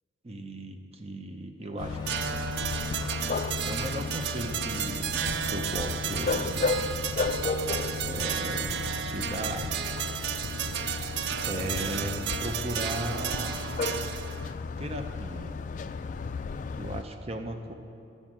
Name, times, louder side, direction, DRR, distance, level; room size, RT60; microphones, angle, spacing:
voice 1, 0.2-2.2 3.7-6.8 8.0-8.8 9.0-9.7 11.4-13.6 14.8-15.5 16.8-17.7, right 1 dB, 35° right, 5 dB, 0.7 m, -36 dB
sound 1, 1.8-17.0, left 4 dB, 45° left, 0.3 m, -34 dB
Train, 1.8-13.7, left 3 dB, 25° left, 0.7 m, -52 dB
sound 2, 2.1-14.5, right 9 dB, 70° right, 0.4 m, -33 dB
11.5 x 5.2 x 7.4 m, 2.5 s
head